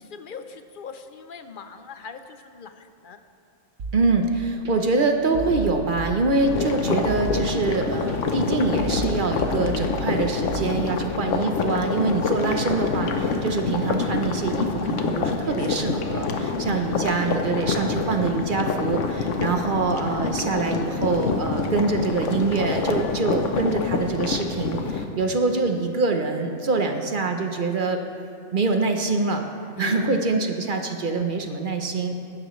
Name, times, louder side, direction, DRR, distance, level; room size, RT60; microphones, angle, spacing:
voice 1, 0.0-3.2 12.4-12.8 15.4-15.9 16.2-16.5 18.9-19.2 22.6-22.8 29.8-30.2, left 5 dB, 55° left, 8 dB, 0.6 m, -39 dB
sound 1, 3.8-4.7 5.3-6.7 7.1-8.1 8.8-10.7, right 4 dB, 70° right, 1.4 m, -34 dB
voice 2, 3.9-28.0 28.5-29.4 29.8-32.1, right 3 dB, 45° right, 5 dB, 0.8 m, -25 dB
sound 2, 6.4-25.0, left 4 dB, 70° left, 1.1 m, -26 dB
16.0 x 11.5 x 3.1 m, 2.6 s
omnidirectional pair, 1.3 m